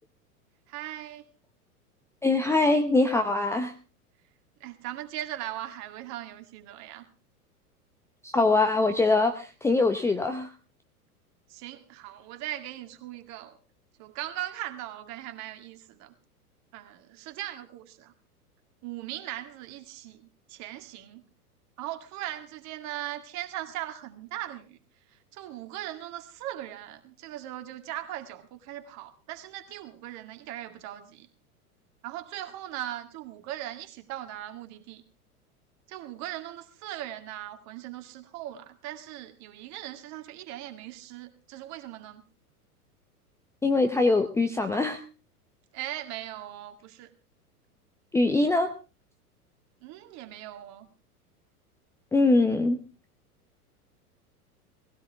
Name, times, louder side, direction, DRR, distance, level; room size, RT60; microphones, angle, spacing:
voice 1, 0.7-1.3 4.6-7.1 11.5-13.6 14.0-16.1 16.7-18.1 18.8-21.2 21.8-24.8 25.1-31.3 32.0-35.0 35.9-42.2 45.7-47.1 49.8-50.9, right 13 dB, 35° right, 7 dB, 2.2 m, -39 dB
voice 2, 2.2-3.7 8.2-10.5 43.6-45.0 48.1-48.7 52.1-52.8, left 3 dB, 5° left, 6 dB, 0.7 m, -23 dB
19.0 x 16.5 x 3.5 m, 0.32 s
figure-of-eight pair, 95°, 46 cm